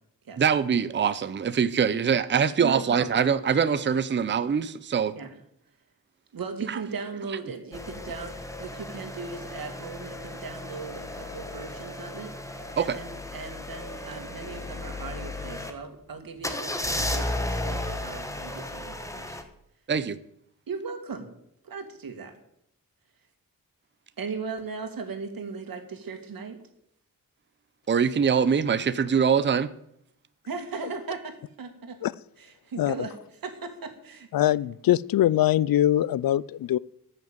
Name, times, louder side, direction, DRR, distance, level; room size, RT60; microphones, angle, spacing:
voice 1, 0.4-5.1 6.7-6.8 12.8-13.0 19.9-20.2 27.9-29.7, right 7 dB, 35° right, 0.6 m, -23 dB
voice 2, 2.6-3.3 5.2-5.3 6.3-19.4 20.7-21.3 21.6-22.3 24.2-26.6 30.5-32.0 32.4-33.1 33.4-34.5, right 4 dB, 80° right, 2.2 m, -38 dB
sound 1, 7.7-15.7 16.4-19.4, left 1 dB, 10° left, 1.3 m, -34 dB
voice 3, 34.3-36.8, left 12 dB, 90° left, 0.5 m, -22 dB
14.0 x 6.6 x 8.8 m
wide cardioid pair, 140°, 34 cm